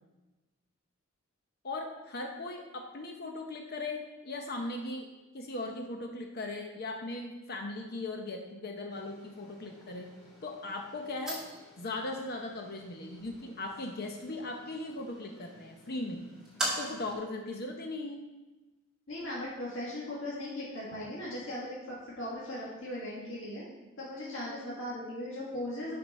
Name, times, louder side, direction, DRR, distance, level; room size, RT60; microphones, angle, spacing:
voice 1, 1.6-5.1 5.3-10.1 10.4-11.4 11.8-16.2 16.8-18.2, left 2 dB, 50° left, 3 dB, 0.7 m, -38 dB
sound 1, 8.9-17.1, right 1 dB, 5° right, 1.7 m, -43 dB
voice 2, 19.1-23.6 24.0-26.0, left 1 dB, 65° left, -7 dB, 1.9 m, -38 dB
7.2 x 5.1 x 5.2 m, 1.1 s
head